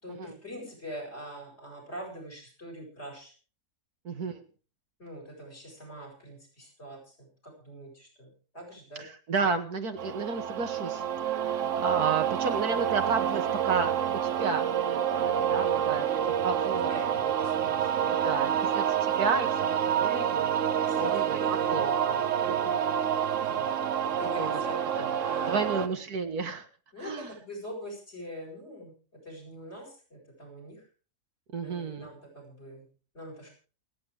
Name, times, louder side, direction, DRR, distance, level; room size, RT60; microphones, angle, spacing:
voice 1, 0.0-3.3 5.0-9.0 15.7-16.5 16.8-18.7 20.8-22.8 23.4-23.7 24.0-24.8 25.2-25.9 26.9-30.8 31.6-32.9 33.1-33.5, equal, 45° left, 2 dB, 8.0 m, -44 dB
voice 2, 4.0-4.4 9.0-13.9 14.2-17.1 17.9-20.5 21.0-21.4 21.7-23.0 24.4-24.6 25.0-25.1 25.5-26.7 27.0-27.3 31.5-32.1, right 4 dB, 90° right, 6 dB, 2.3 m, -32 dB
sound 1, 10.0-25.9, right 9 dB, 60° right, 1.1 m, -28 dB
28.0 x 9.6 x 3.5 m, 0.38 s
omnidirectional pair, 1.6 m